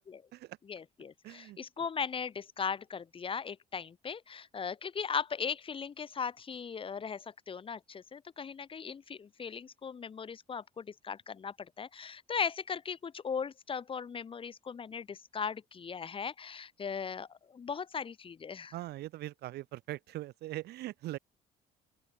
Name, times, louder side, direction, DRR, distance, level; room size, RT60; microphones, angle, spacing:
voice 1, 0.6-18.7, left 6 dB, 30° left, 1.1 m, -38 dB
voice 2, 1.2-1.6 18.7-21.2, right 16 dB, 75° right, 1.9 m, -41 dB
open air
cardioid pair, 110°, 17 cm